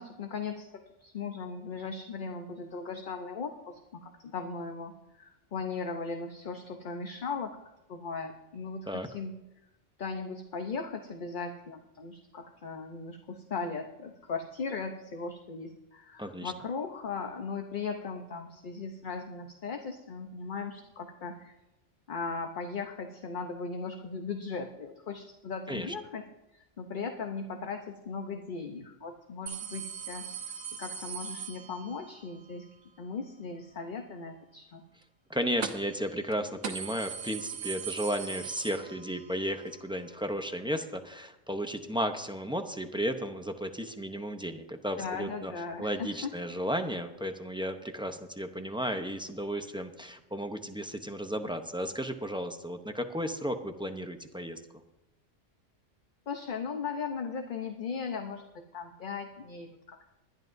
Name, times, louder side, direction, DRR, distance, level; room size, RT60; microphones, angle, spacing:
voice 1, 0.0-7.6 7.9-9.3 10.0-21.5 22.1-26.3 26.5-32.7 33.0-34.8 45.0-46.3 56.3-60.1, left 4 dB, 50° left, 5 dB, 0.9 m, -38 dB
voice 2, 16.2-16.5 25.7-25.9 35.3-45.5 45.8-54.6, equal, 5° right, 6 dB, 0.6 m, -34 dB
sound 1, 29.5-32.2 35.6-36.0 36.3-36.4 36.6-39.4 39.7-39.8 40.8-40.9, right 7 dB, 85° right, 1.3 m, -39 dB
20.0 x 11.5 x 2.6 m, 0.94 s
omnidirectional pair, 1.2 m